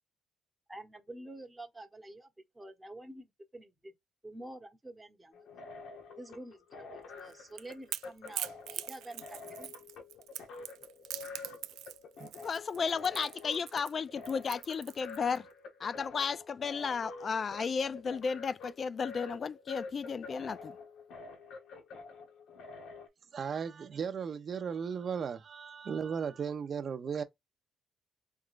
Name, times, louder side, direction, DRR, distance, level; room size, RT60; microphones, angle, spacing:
voice 1, 0.7-2.3 2.5-3.2 3.5-3.9 4.2-5.5 6.2-9.7, right 1 dB, 15° right, 1.1 m, -48 dB
sound 1, 5.3-23.1, left 4 dB, 80° left, 1.1 m, -48 dB
Crackle / Crack, 7.2-15.4, right 13 dB, 90° right, 0.3 m, -43 dB
voice 2, 12.4-15.5 15.8-20.8, left 5 dB, 45° left, 0.3 m, -34 dB
voice 3, 23.3-27.2, right 6 dB, 50° right, 0.7 m, -36 dB
3.6 x 3.0 x 2.5 m
cardioid pair, 90°, 0 cm